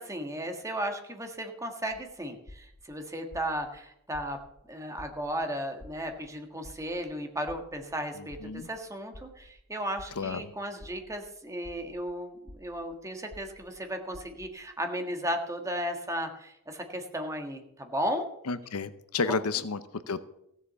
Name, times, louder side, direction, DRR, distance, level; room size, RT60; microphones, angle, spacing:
voice 1, 0.0-4.4 4.7-18.3 19.3-19.4, equal, 15° right, 4 dB, 1.6 m, -35 dB
sound 1, 1.9-2.0 2.5-2.8 3.3-3.7 4.1-4.5 5.0-5.3 5.8-6.2 6.6-7.0 7.5-7.8 8.3-8.7 9.1-9.5 10.0-10.3 10.8-11.2 11.6-12.0 12.5-12.8 13.3-13.7 14.1-14.5, left 1 dB, 35° left, 0.9 m, -48 dB
voice 2, 8.2-8.7 10.2-10.5 18.5-20.3, left 4 dB, 80° left, 13 dB, 0.8 m, -32 dB
15.5 x 7.2 x 6.9 m, 0.79 s
head